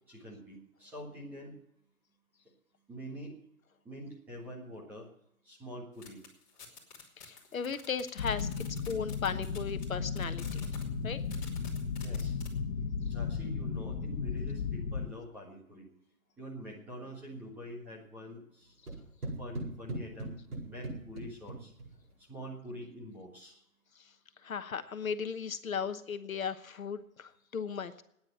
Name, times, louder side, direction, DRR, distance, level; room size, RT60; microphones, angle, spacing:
voice 1, 0.1-1.6 2.9-3.4 3.8-5.1 5.4-6.3 12.0-12.3 13.0-15.9 16.4-18.7 19.4-21.7 22.2-23.6, equal, 5° right, -5 dB, 1.5 m, -45 dB
sound 1, 6.0-9.9 10.2-10.8 11.2-12.5, left 6 dB, 30° left, 3.0 m, -50 dB
voice 2, 7.2-8.5 8.9-10.7 11.0-11.2 24.0-24.1 24.4-28.0, left 6 dB, 65° left, 10 dB, 1.1 m, -36 dB
sound 2, 8.2-15.1, left 5 dB, 50° left, 1.9 m, -35 dB
sound 3, 18.9-22.1, right 2 dB, 90° right, 7.4 m, -40 dB
13.0 x 9.8 x 7.7 m, 0.79 s
hypercardioid pair, 165°, 45 cm